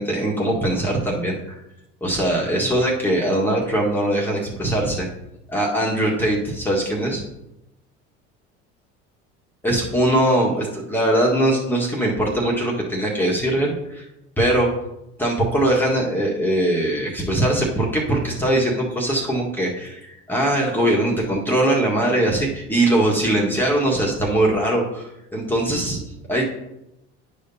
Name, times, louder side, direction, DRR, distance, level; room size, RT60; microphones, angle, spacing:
voice 1, 0.0-1.6 2.0-5.1 5.5-7.2 9.6-14.0 14.4-14.7 15.2-26.0 26.3-26.4, right 1 dB, 5° left, -3 dB, 1.6 m, -21 dB
10.5 x 5.0 x 2.8 m, 0.88 s
hypercardioid pair, 75°, 34 cm